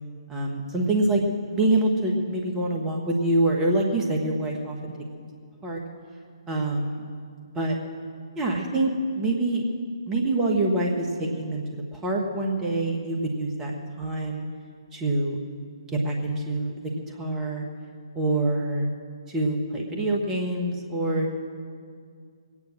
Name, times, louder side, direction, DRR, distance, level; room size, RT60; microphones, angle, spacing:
voice 1, 0.3-1.2 1.5-5.2 5.6-5.8 6.5-7.1 7.5-7.8 8.4-9.6 10.1-14.4 14.9-15.4 15.9-16.9 17.2-17.7 18.1-18.9 19.3-21.3, right 2 dB, 10° right, 0 dB, 1.7 m, -26 dB
21.5 x 9.7 x 6.4 m, 2.2 s
figure-of-eight pair, 135°, 3 cm